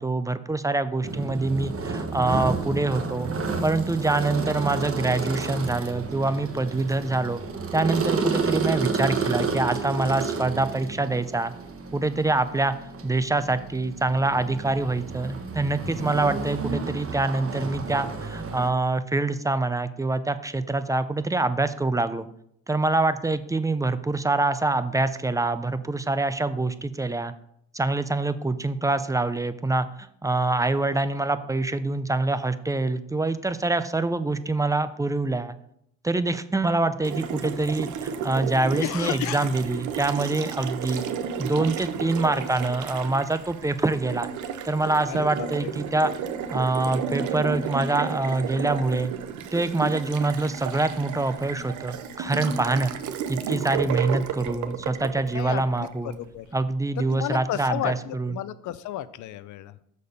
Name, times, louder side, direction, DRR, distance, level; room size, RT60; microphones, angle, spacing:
voice 1, 0.0-3.3 3.6-7.4 7.7-11.5 11.9-12.7 13.0-22.3 22.7-27.3 27.7-35.6 36.0-41.0 41.4-44.3 44.6-46.1 46.5-49.1 49.5-52.9 53.3-56.2 56.5-58.3, right 2 dB, 10° right, 12 dB, 0.4 m, -25 dB
sound 1, 1.0-18.7, right 4 dB, 50° right, 1.1 m, -31 dB
Water tap faucet, 37.0-56.2, right 7 dB, 75° right, 0.7 m, -32 dB
voice 2, 38.7-39.5 45.1-45.7 55.3-56.5 57.1-59.7, left 12 dB, 75° left, 16 dB, 0.5 m, -33 dB
6.7 x 4.3 x 5.2 m, 0.71 s
cardioid pair, 90°, 30 cm